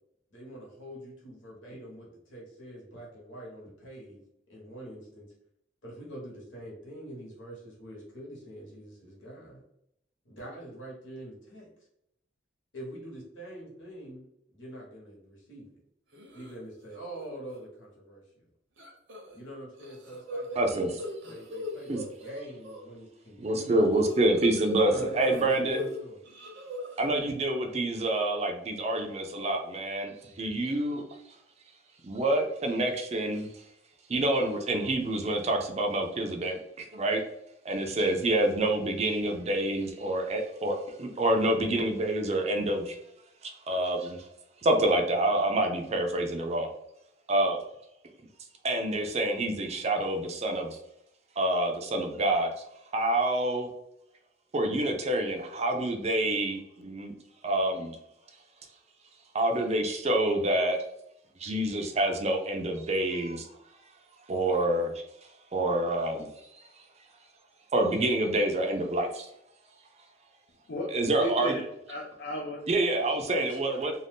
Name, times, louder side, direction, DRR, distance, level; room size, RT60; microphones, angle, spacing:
voice 1, 0.3-4.2 4.5-5.3 5.8-9.6 10.2-11.7 12.7-14.3 14.5-15.7 16.3-18.2 19.3-21.0 21.3-23.9 24.9-26.2, right 1 dB, 85° left, -3 dB, 1.2 m, -44 dB
sound 1, 16.1-16.5 16.9-17.2 17.5-17.6 18.8-19.4 19.7-22.8 23.9-26.0 26.2-27.1, left 2 dB, 75° right, 0.7 m, -39 dB
voice 2, 20.5-21.0 21.9-22.0 23.4-25.9 27.0-31.0 32.0-33.5 34.1-37.2 37.6-43.0 43.4-44.3 44.6-46.7 47.3-47.6 48.6-50.8 51.4-52.5 52.9-53.7 54.5-57.1 57.4-58.0 59.3-60.8 61.4-63.5 64.3-64.9 65.5-66.3 66.5-66.7 67.7-69.3 70.9-71.6 72.7-73.9, right 1 dB, 35° right, 4 dB, 0.4 m, -27 dB
voice 3, 71.2-72.6 73.3-73.8, left 1 dB, 60° left, -1 dB, 0.5 m, -35 dB
2.6 x 2.3 x 3.4 m, 0.78 s
head